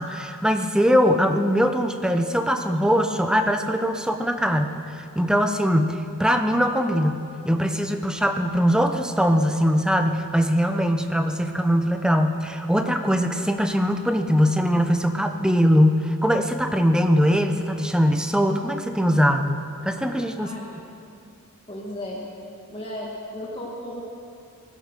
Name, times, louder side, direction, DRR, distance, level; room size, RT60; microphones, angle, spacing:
voice 1, 0.0-20.5, equal, 5° right, 6 dB, 0.8 m, -21 dB
voice 2, 20.4-20.9 21.7-22.2 22.7-24.0, left 1 dB, 25° left, -4 dB, 1.7 m, -35 dB
19.5 x 11.0 x 6.6 m, 2.5 s
head